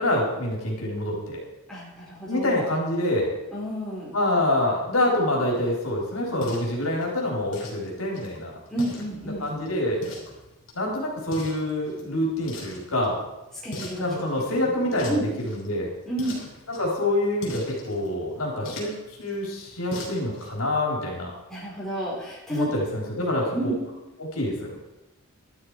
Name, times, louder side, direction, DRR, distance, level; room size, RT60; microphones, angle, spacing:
voice 1, 0.0-1.4 2.3-3.3 4.1-8.6 9.4-10.0 10.7-13.2 14.0-15.9 16.8-21.3 22.5-23.7 24.2-24.7, left 1 dB, 85° left, -1 dB, 4.0 m, -26 dB
voice 2, 1.7-2.7 3.5-4.1 8.7-9.5 13.6-15.2 16.0-16.4 21.5-22.7 23.5-23.8, right 1 dB, ahead, -7 dB, 4.8 m, -31 dB
sound 1, 5.3-20.6, left 1 dB, 60° left, 3.6 m, -43 dB
12.5 x 12.0 x 4.9 m, 0.94 s
head